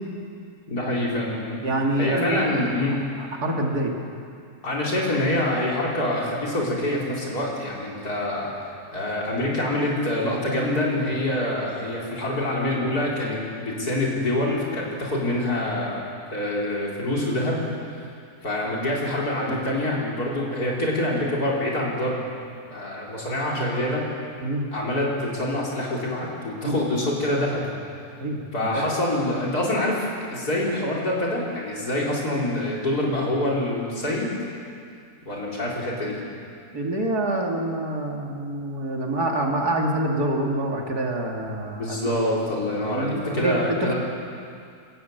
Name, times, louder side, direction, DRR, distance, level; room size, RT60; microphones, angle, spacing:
voice 1, 0.7-1.6 2.0-3.0 4.6-8.5 8.9-16.0 16.3-17.7 18.4-22.2 22.7-24.1 24.7-27.7 28.5-34.3 35.3-36.2 41.8-43.9, left 1 dB, 70° left, -4 dB, 4.8 m, -26 dB
voice 2, 1.6-2.6 3.2-3.9 24.4-24.6 26.6-26.8 28.2-28.4 28.7-28.8 36.7-42.2 42.8-43.9, right 1 dB, 70° right, 0 dB, 2.9 m, -26 dB
27.5 x 15.0 x 8.1 m, 2.4 s
omnidirectional pair, 1.7 m